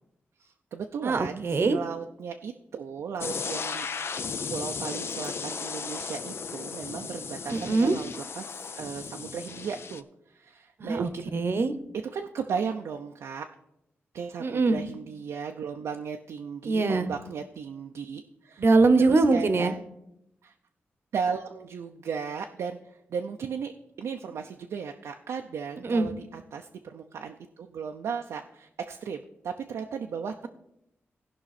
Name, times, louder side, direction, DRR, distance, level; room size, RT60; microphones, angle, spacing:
voice 1, 0.4-11.3 12.1-13.5 14.1-18.7 19.0-19.8 20.4-20.5 21.1-23.7 24.0-30.5, right 6 dB, 90° right, 3 dB, 0.5 m, -36 dB
voice 2, 1.0-1.8 7.5-7.9 10.8-11.7 14.4-14.8 16.6-17.1 18.6-19.7 25.8-26.1, right 3 dB, 55° right, 11 dB, 0.8 m, -23 dB
sound 1, 3.2-10.0, left 5 dB, 65° left, 0.5 m, -35 dB
16.5 x 5.4 x 4.1 m, 0.82 s
cardioid pair, 70°, 5 cm